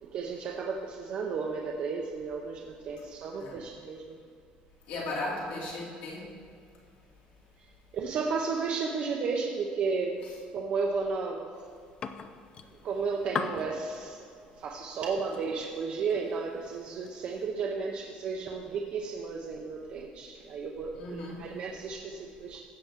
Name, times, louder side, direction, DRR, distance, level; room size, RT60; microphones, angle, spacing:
voice 1, 0.0-4.2 7.9-10.2 10.5-11.4 12.8-14.2 14.6-22.6, right 4 dB, 45° right, -1 dB, 0.8 m, -33 dB
voice 2, 4.9-6.2 10.2-10.3 20.9-21.4, left 2 dB, 75° left, -5 dB, 2.9 m, -36 dB
sound 1, 11.5-17.5, left 6 dB, 30° left, 0.4 m, -42 dB
16.0 x 6.8 x 3.7 m, 2.3 s
cardioid pair, 170°, 3 cm